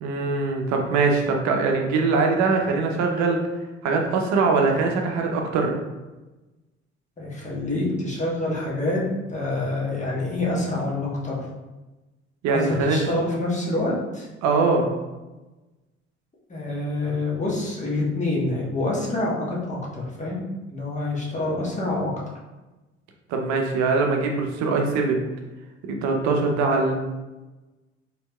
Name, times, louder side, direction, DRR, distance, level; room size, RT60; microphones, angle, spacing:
voice 1, 0.0-3.4 3.8-5.7 12.4-13.0 14.4-14.9 23.3-25.2 25.9-26.9, right 4 dB, 50° right, 2 dB, 0.8 m, -22 dB
voice 2, 7.2-9.0 9.3-11.5 12.5-14.3 16.5-20.4 20.7-22.1, left 2 dB, 20° left, -5 dB, 1.4 m, -26 dB
4.4 x 3.4 x 2.3 m, 1.1 s
figure-of-eight pair, 55°, 36 cm